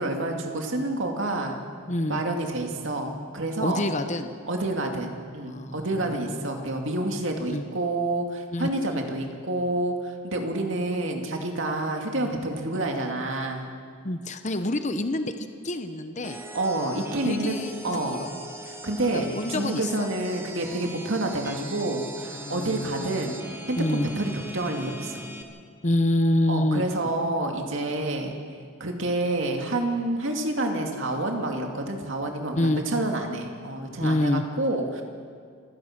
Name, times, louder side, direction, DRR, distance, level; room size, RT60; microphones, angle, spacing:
voice 1, 0.0-1.6 2.1-3.8 4.5-13.7 16.5-17.6 17.8-18.2 18.7-23.4 23.7-25.3 26.5-28.4 28.8-35.0, right 2 dB, 60° right, 2 dB, 2.5 m, -28 dB
voice 2, 1.9-2.2 3.6-4.3 5.4-5.9 7.5-7.6 8.5-9.0 14.0-15.3 15.6-16.4 17.2-17.7 18.1-18.3 19.1-20.1 22.3-22.9 23.8-24.1 25.8-26.8 32.5-32.8 34.0-34.4, left 1 dB, 35° left, 8 dB, 0.9 m, -26 dB
sound 1, 16.2-25.4, right 1 dB, 10° right, 1.6 m, -40 dB
28.0 x 16.5 x 6.0 m, 2.1 s
head